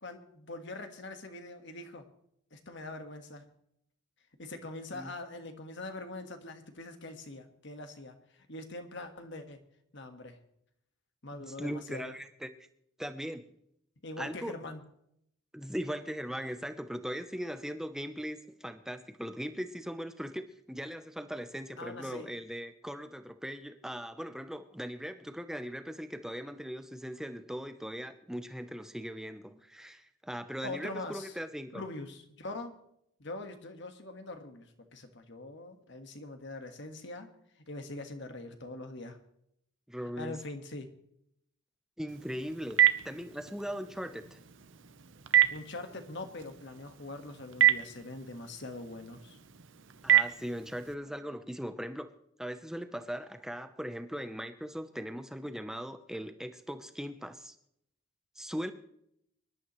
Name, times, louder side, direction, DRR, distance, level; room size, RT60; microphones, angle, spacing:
voice 1, 0.0-2.0 2.5-3.4 4.4-8.2 8.5-9.6 9.9-10.4 11.2-12.1 14.0-14.8 21.8-22.3 30.6-31.3 31.7-32.8 33.2-37.3 37.7-39.2 40.2-40.9 45.5-49.4, left 2 dB, 60° left, 6 dB, 1.6 m, -43 dB
voice 2, 11.3-12.5 13.0-13.5 14.2-14.6 15.5-31.8 39.9-40.4 42.0-44.4 50.0-57.6 58.4-58.7, equal, ahead, 9 dB, 0.7 m, -39 dB
Telephone, 42.1-50.9, right 11 dB, 65° right, 0.8 m, -30 dB
24.0 x 11.5 x 3.2 m, 0.73 s
head